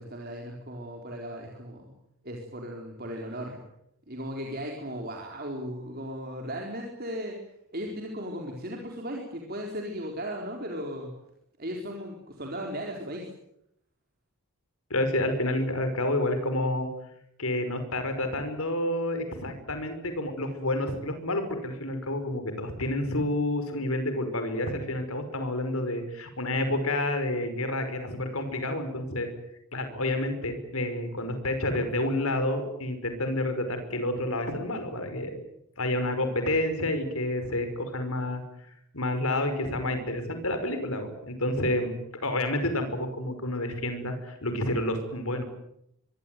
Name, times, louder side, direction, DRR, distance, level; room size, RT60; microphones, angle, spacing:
voice 1, 0.0-2.0 2.2-3.6 4.1-7.3 7.7-11.1 11.6-13.3, equal, 45° right, 1 dB, 4.4 m, -36 dB
voice 2, 14.9-16.9 17.4-29.3 29.7-35.4 35.8-38.4 38.9-41.9 42.2-45.5, left 1 dB, 70° left, 8 dB, 5.4 m, -29 dB
25.0 x 23.0 x 9.4 m, 0.76 s
head